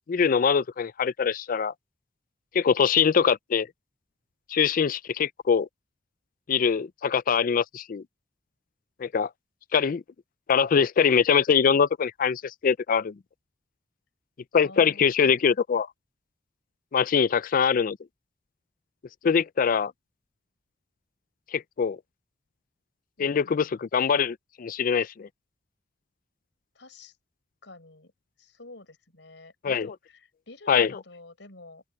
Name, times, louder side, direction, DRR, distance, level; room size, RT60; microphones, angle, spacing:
voice 1, 0.1-1.7 2.5-3.7 4.5-5.7 6.5-8.0 9.0-9.3 9.7-10.0 10.5-13.1 14.5-15.9 16.9-18.0 19.2-19.9 21.5-22.0 23.2-25.3 29.6-29.9 30.7-30.9, left 6 dB, 50° left, 0.4 m, -23 dB
voice 2, 14.6-15.4 26.7-27.2 27.6-28.1 28.4-31.8, left 2 dB, 75° left, 5.7 m, -49 dB
open air
head